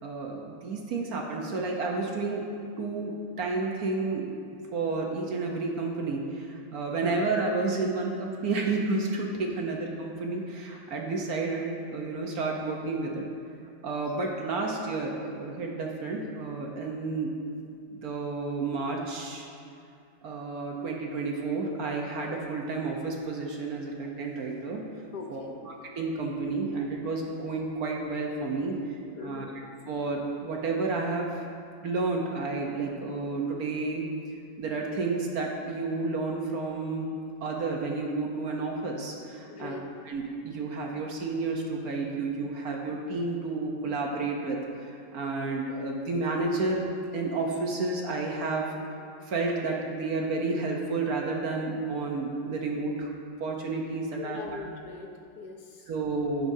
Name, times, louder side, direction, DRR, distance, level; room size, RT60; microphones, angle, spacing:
voice 1, 0.0-2.4 2.8-4.3 4.7-13.3 13.8-17.3 17.9-19.5 20.2-24.8 25.3-28.8 29.2-29.4 29.9-31.4 31.8-34.1 34.6-37.1 37.4-39.8 40.1-46.8 47.1-48.7 49.2-53.1 53.4-54.6 55.9-56.5, right 3 dB, 60° right, 0 dB, 1.1 m, -31 dB
voice 2, 25.1-25.6 29.2-29.5 39.5-39.9 54.2-55.9, left 4 dB, 70° left, 2 dB, 1.1 m, -41 dB
15.5 x 6.1 x 2.7 m, 2.4 s
omnidirectional pair, 2.0 m